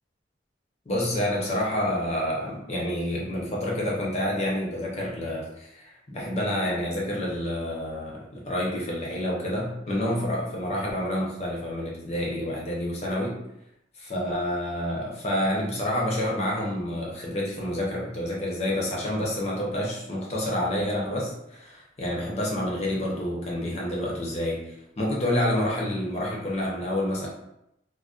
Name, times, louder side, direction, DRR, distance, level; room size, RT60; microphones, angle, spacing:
voice 1, 0.9-13.4 14.0-27.3, left 1 dB, 35° left, -3 dB, 0.6 m, -28 dB
2.4 x 2.1 x 2.3 m, 0.82 s
head